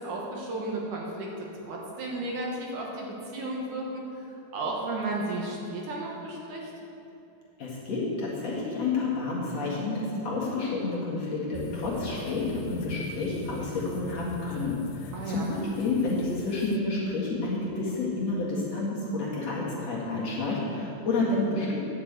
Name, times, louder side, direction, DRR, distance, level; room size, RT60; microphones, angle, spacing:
voice 1, 0.0-6.7 15.1-15.5, right 2 dB, 65° right, -2 dB, 2.6 m, -34 dB
voice 2, 7.6-21.8, left 3 dB, 50° left, -6 dB, 2.8 m, -30 dB
sound 1, 11.5-16.8, left 5 dB, 85° left, 2.3 m, -41 dB
10.5 x 6.7 x 8.1 m, 2.8 s
omnidirectional pair, 4.2 m